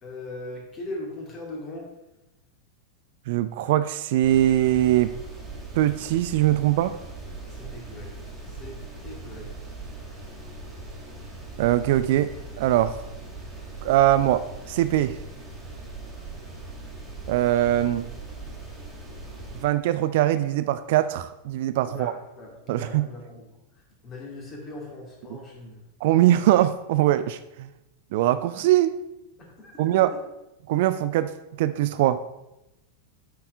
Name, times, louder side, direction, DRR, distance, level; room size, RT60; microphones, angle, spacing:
voice 1, 0.0-1.9 7.5-8.8 9.0-9.5 21.9-23.5 24.0-25.8 29.4-30.0, left 1 dB, 25° left, -1 dB, 2.4 m, -39 dB
voice 2, 3.3-5.1 5.7-7.0 11.6-13.0 13.8-15.2 17.3-18.1 19.5-22.1 22.7-23.1 25.3-25.4 26.0-27.7 28.1-29.0 29.8-30.1 30.7-31.3 31.6-32.2, right 13 dB, 50° right, 12 dB, 0.3 m, -22 dB
sound 1, 4.2-19.6, right 2 dB, 5° right, 2.4 m, -40 dB
8.4 x 4.6 x 4.7 m, 0.93 s
figure-of-eight pair, 90°, 0 cm